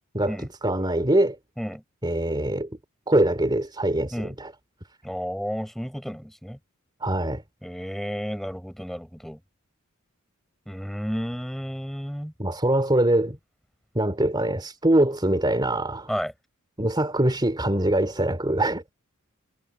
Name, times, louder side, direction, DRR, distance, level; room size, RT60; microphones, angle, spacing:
voice 1, 0.0-0.4 0.6-1.4 2.0-2.7 3.1-4.5 7.0-7.4 12.4-13.4 13.9-16.1 16.8-18.8, right 1 dB, 20° right, 3.2 m, -23 dB
voice 2, 5.0-6.6 7.6-9.4 10.7-12.3 16.1-16.3, equal, ahead, 7.4 m, -32 dB
head